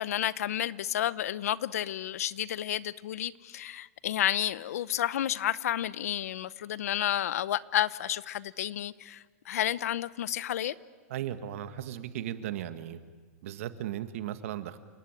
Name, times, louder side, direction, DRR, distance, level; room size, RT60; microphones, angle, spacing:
voice 1, 0.0-10.8, left 12 dB, 75° left, 18 dB, 0.8 m, -31 dB
voice 2, 11.1-13.0 13.4-14.8, right 11 dB, 60° right, 10 dB, 1.7 m, -36 dB
29.5 x 18.5 x 9.0 m, 1.5 s
supercardioid pair, 160°, 8 cm